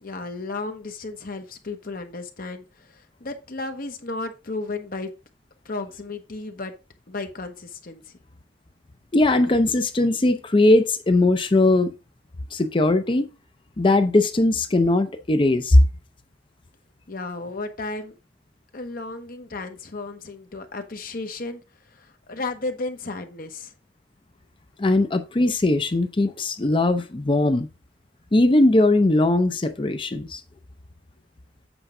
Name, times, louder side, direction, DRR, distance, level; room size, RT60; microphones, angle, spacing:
voice 1, 0.0-5.1 5.6-6.7 7.1-8.2 17.1-18.1 18.7-21.6 22.0-23.7 24.8-24.9, left 3 dB, 55° left, 1.1 m, -34 dB
voice 2, 9.1-11.9 12.5-13.3 13.8-15.8 24.8-27.7 28.3-30.4, left 2 dB, 30° left, 0.6 m, -19 dB
8.0 x 4.5 x 3.7 m
head